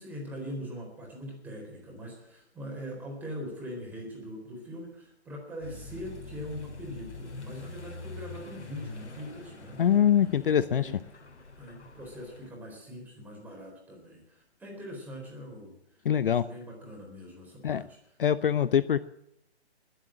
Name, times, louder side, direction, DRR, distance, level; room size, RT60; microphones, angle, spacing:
voice 1, 0.0-9.8 10.2-10.9 11.6-15.8 16.3-18.0, equal, 5° right, -1 dB, 4.1 m, -42 dB
Accelerating revving vroom, 5.6-12.5, left 3 dB, 85° left, 3.4 m, -45 dB
voice 2, 9.8-10.9 16.0-16.4 17.6-17.8 18.2-19.0, left 9 dB, 55° left, 15 dB, 0.7 m, -23 dB
21.0 x 8.1 x 7.5 m, 0.83 s
hypercardioid pair, 155°, 33 cm